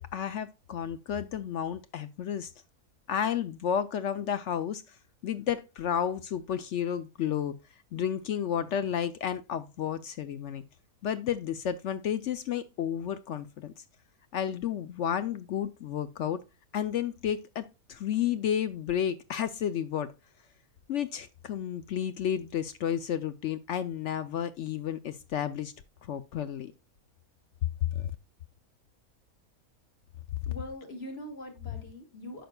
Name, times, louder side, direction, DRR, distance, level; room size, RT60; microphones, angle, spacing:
voice 1, 0.0-2.5 3.1-5.0 5.2-7.6 7.9-10.6 11.0-13.7 14.3-16.4 16.7-20.1 20.9-25.7 26.0-26.7 27.9-28.1, left 9 dB, 65° left, 0.8 m, -32 dB
voice 2, 30.5-32.5, left 1 dB, 45° left, 2.3 m, -42 dB
10.0 x 6.0 x 2.3 m
omnidirectional pair, 1.5 m